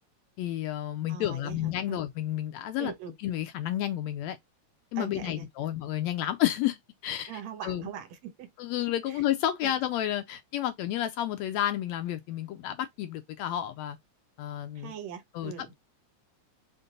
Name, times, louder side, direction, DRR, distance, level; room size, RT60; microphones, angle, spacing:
voice 1, 0.4-2.9 3.2-4.4 4.9-6.8 7.0-7.3 7.6-7.8 8.6-14.0 14.4-14.9 15.4-15.7, left 12 dB, 80° left, 1.7 m, -31 dB
voice 2, 1.1-2.0 2.8-3.2 5.0-5.8 7.3-8.5 9.1-9.2 9.6-9.7 14.8-15.7, right 9 dB, 70° right, 2.3 m, -41 dB
5.2 x 2.6 x 3.8 m
omnidirectional pair, 3.4 m